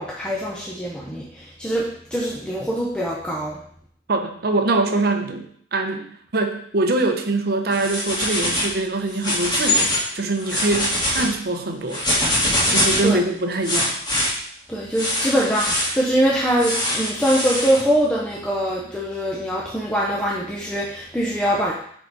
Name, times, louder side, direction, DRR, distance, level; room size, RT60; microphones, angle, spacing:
voice 1, 0.0-3.6 13.0-13.2 14.7-21.7, equal, 5° left, -4 dB, 0.7 m, -23 dB
voice 2, 4.1-12.0 12.7-13.9, right 2 dB, 50° right, 5 dB, 0.8 m, -23 dB
sound 1, 7.7-8.7 9.1-10.1 10.4-11.3 11.9-13.1 13.6-14.3 14.9-15.9 16.6-17.8, left 1 dB, 20° left, 1.8 m, -23 dB
5.6 x 4.8 x 4.0 m, 0.63 s
head